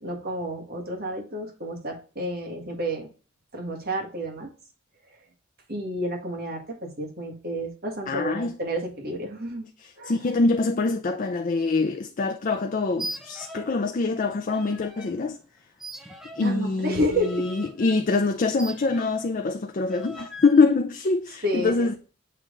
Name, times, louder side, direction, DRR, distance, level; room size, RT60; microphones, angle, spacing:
voice 1, 0.0-3.1 3.5-4.5 5.7-9.7 10.0-10.1 16.4-17.4 21.4-21.9, equal, 50° right, 1.8 m, -30 dB
voice 2, 8.1-8.6 9.8-15.4 16.4-21.9, left 3 dB, 40° left, 0.4 m, -24 dB
sound 1, 12.9-13.8 14.1-15.1 15.8-19.4 19.9-20.6, right 1 dB, ahead, 0.8 m, -40 dB
7.6 x 3.4 x 3.8 m
head